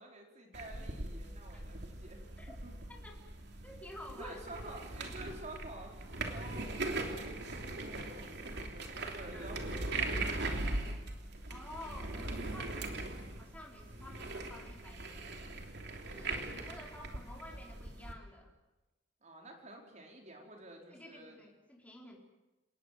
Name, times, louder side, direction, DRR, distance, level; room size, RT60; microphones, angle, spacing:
voice 1, 0.0-2.3 2.6-2.7 4.1-9.7 10.0-11.0 19.2-21.4, right 2 dB, 40° right, 1 dB, 4.8 m, -50 dB
sound 1, 0.5-18.1, right 2 dB, 65° right, 3.2 m, -40 dB
voice 2, 3.6-4.7 9.3-9.5 11.5-15.5 16.1-18.5 20.9-22.2, left 1 dB, 10° left, -1 dB, 4.7 m, -51 dB
29.5 x 18.5 x 7.7 m, 1.0 s
head